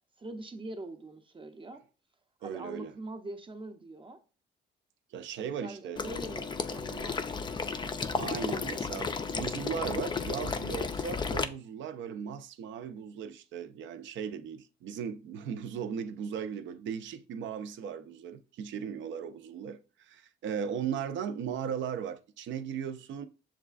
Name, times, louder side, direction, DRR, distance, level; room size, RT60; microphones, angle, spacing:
voice 1, 0.2-1.8 2.4-4.2 5.4-7.7, right 2 dB, 25° right, 0.6 m, -43 dB
voice 2, 2.4-2.9 5.1-6.0 8.2-23.3, right 8 dB, 70° right, 0.5 m, -37 dB
Water / Liquid, 6.0-11.4, left 5 dB, 25° left, 0.3 m, -33 dB
7.1 x 2.4 x 2.4 m
cardioid pair, 90°, 20 cm